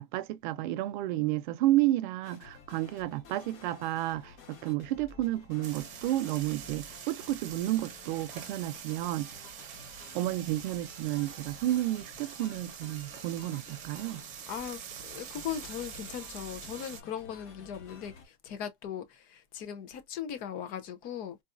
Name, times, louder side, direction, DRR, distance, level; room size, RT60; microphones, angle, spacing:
voice 1, 0.0-9.3 10.1-14.2, right 15 dB, 50° right, 0.4 m, -31 dB
sound 1, 2.2-18.3, left 5 dB, 45° left, 1.4 m, -53 dB
sound 2, 5.6-17.0, right 8 dB, 25° right, 0.8 m, -45 dB
voice 2, 14.5-21.4, left 9 dB, 30° left, 0.5 m, -39 dB
3.9 x 2.3 x 2.4 m
supercardioid pair, 170°, 30 cm